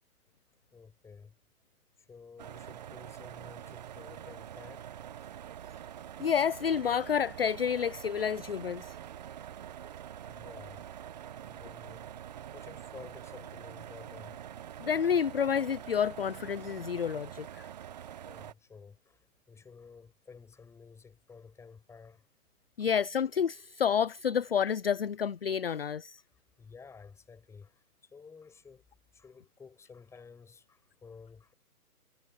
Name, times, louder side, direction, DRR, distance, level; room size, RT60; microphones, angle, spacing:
voice 1, 0.7-1.4 2.0-4.9 10.3-10.9 11.4-12.3 12.5-14.4 18.2-22.3 22.8-22.9 26.6-28.8 29.1-31.5, left 5 dB, 5° left, 7.9 m, -53 dB
sound 1, 2.4-18.5, right 10 dB, 25° right, 1.1 m, -45 dB
voice 2, 6.2-9.0 14.8-17.6 22.8-26.2, left 7 dB, 40° left, 0.6 m, -29 dB
hypercardioid pair, 155°, 46 cm